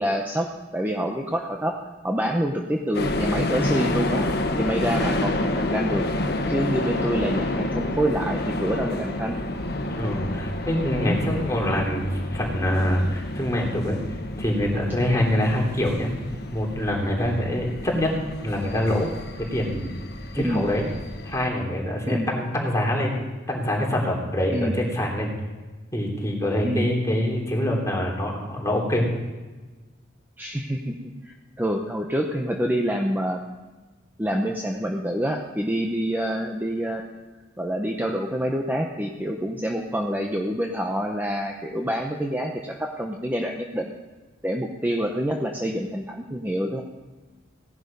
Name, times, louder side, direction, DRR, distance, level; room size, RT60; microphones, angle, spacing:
voice 1, 0.0-1.8 2.0-4.3 4.6-6.0 6.5-9.4 11.0-11.2 20.4-20.7 22.1-22.3 24.5-24.8 26.6-26.9 30.4-30.9 31.2-33.4 34.2-37.0 37.6-43.9 44.4-46.8, equal, 10° right, 1 dB, 0.9 m, -27 dB
sound 1, 2.9-21.5, left 1 dB, 60° left, 1.4 m, -29 dB
voice 2, 9.9-14.0 14.4-16.1 16.5-18.1 18.4-19.1 19.4-20.0 20.3-20.9 21.2-25.3 25.9-29.1, left 1 dB, 15° left, -1 dB, 3.3 m, -25 dB
17.5 x 10.5 x 5.4 m, 1.2 s
head